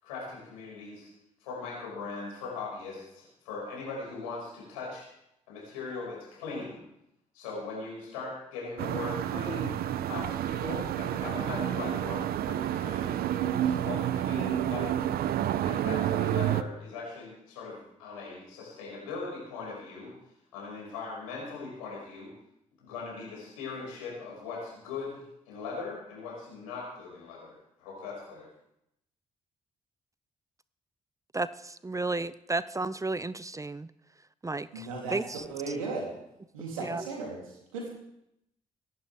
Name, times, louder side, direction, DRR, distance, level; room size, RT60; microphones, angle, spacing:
voice 1, 0.0-1.1 1.4-5.1 5.5-6.8 7.3-9.8 10.1-13.2 13.5-15.0 15.6-20.1 20.5-22.3 22.8-28.5, left 4 dB, 85° left, -3 dB, 5.5 m, -40 dB
sound 1, 8.8-16.6, right 11 dB, 65° right, 0.7 m, -29 dB
voice 2, 31.3-33.9 34.4-35.4 36.8-37.0, right 2 dB, 20° right, 17 dB, 0.7 m, -33 dB
voice 3, 34.7-36.1 36.5-37.9, right 3 dB, 85° right, -1 dB, 3.1 m, -36 dB
24.0 x 11.5 x 3.5 m, 0.80 s
hypercardioid pair, 40°, 17 cm